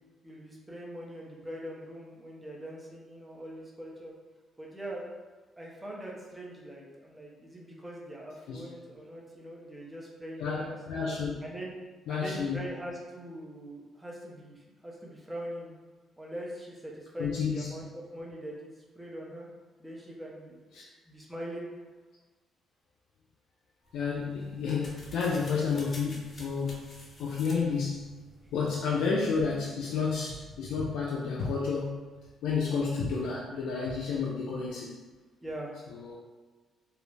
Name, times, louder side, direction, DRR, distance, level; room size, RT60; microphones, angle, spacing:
voice 1, 0.2-4.1 4.6-5.1 5.6-11.0 11.4-11.8 12.1-15.7 16.2-19.5 19.8-20.8 21.1-21.7 35.4-35.7, right 1 dB, 10° right, -3 dB, 0.6 m, -42 dB
voice 2, 10.4-11.4 12.1-12.6 17.2-17.7 20.7-20.8 23.9-26.9 27.2-28.1 28.5-32.0 32.4-35.0 35.9-36.2, left 5 dB, 85° left, -4 dB, 0.3 m, -31 dB
sound 1, 23.9-29.2, left 1 dB, 40° left, 0.8 m, -50 dB
2.3 x 2.0 x 3.2 m, 1.3 s
cardioid pair, 90°, 0 cm